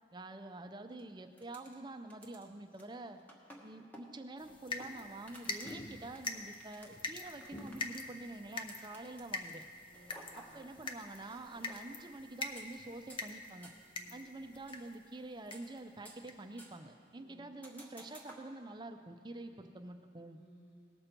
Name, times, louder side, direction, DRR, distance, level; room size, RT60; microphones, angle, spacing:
voice 1, 0.1-3.2 3.6-9.6 10.3-13.7 14.1-20.4, right 2 dB, 25° right, 6 dB, 0.6 m, -47 dB
sound 1, 0.9-1.0 1.4-1.8 2.1-9.4 9.9-11.8 12.6-12.7 13.1-13.2 13.6-13.7 14.7-15.0 15.4-16.3 16.6-16.9 17.6-18.5, right 1 dB, 10° left, 1.2 m, -56 dB
sound 2, 4.4-15.0 15.5-15.8 16.3-16.4 16.7-16.8, left 3 dB, 30° left, 0.6 m, -44 dB
voice 2, 9.8-10.7 13.9-14.4 17.1-17.6 19.3-20.8, right 1 dB, 65° left, -6 dB, 1.7 m, -62 dB
18.5 x 6.6 x 4.5 m, 2.2 s
head